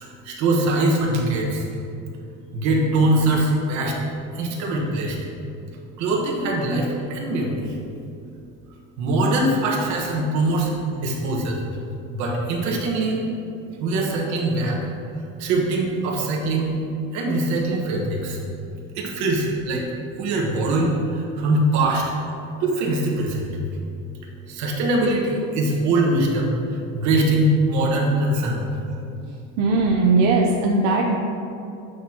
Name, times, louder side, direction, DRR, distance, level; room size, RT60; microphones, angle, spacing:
voice 1, 0.0-1.7 2.5-4.0 4.3-5.2 6.0-7.8 9.0-11.6 12.1-13.2 13.8-14.8 15.4-16.8 17.1-18.4 18.9-19.8 20.2-22.1 22.6-23.5 24.5-28.6, right 2 dB, 55° right, -1 dB, 1.4 m, -22 dB
voice 2, 29.6-31.2, right 3 dB, 75° right, -1 dB, 0.7 m, -19 dB
8.6 x 6.3 x 2.9 m, 2.7 s
cardioid pair, 170°, 35 cm